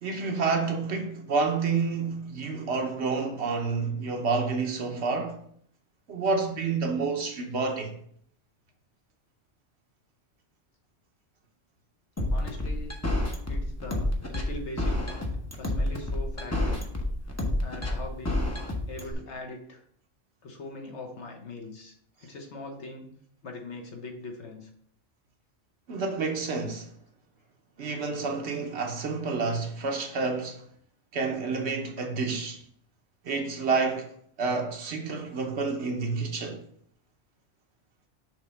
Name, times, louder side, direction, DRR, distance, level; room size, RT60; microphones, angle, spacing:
voice 1, 0.0-5.4 6.1-7.9 25.9-26.9 27.8-30.6 31.1-32.6 33.2-34.1 34.4-36.6, right 4 dB, 65° right, 1.1 m, -29 dB
sound 1, 12.2-19.1, left 1 dB, 15° left, 0.7 m, -28 dB
voice 2, 12.3-13.0 13.5-16.9 17.2-18.5 18.9-19.8 20.4-23.1 23.4-24.7, left 2 dB, 65° left, 1.4 m, -41 dB
6.3 x 3.3 x 5.2 m
omnidirectional pair, 1.3 m